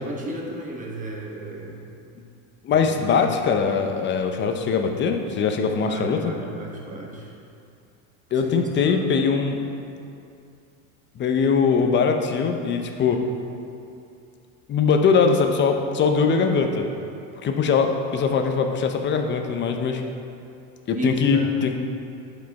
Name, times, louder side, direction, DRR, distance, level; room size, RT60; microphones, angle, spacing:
voice 1, 0.0-1.8 2.7-3.3 5.9-7.4 8.3-9.0 20.9-21.6, right 1 dB, 20° right, -1 dB, 1.2 m, -34 dB
voice 2, 2.6-6.2 8.3-9.6 11.2-13.3 14.7-16.9 17.4-20.0 20.9-21.8, left 5 dB, 30° left, 5 dB, 0.7 m, -21 dB
11.5 x 5.3 x 3.6 m, 2.6 s
supercardioid pair, 130°, 39 cm